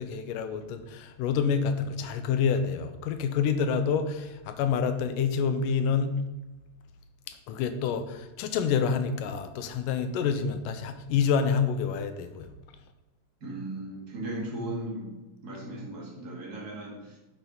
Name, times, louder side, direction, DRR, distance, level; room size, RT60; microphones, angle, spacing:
voice 1, 0.0-6.2 7.3-12.5, left 6 dB, 80° left, 9 dB, 2.2 m, -28 dB
voice 2, 13.4-15.1 15.4-17.2, right 1 dB, 30° right, -3 dB, 2.2 m, -37 dB
10.5 x 6.9 x 3.9 m, 1.1 s
omnidirectional pair, 4.1 m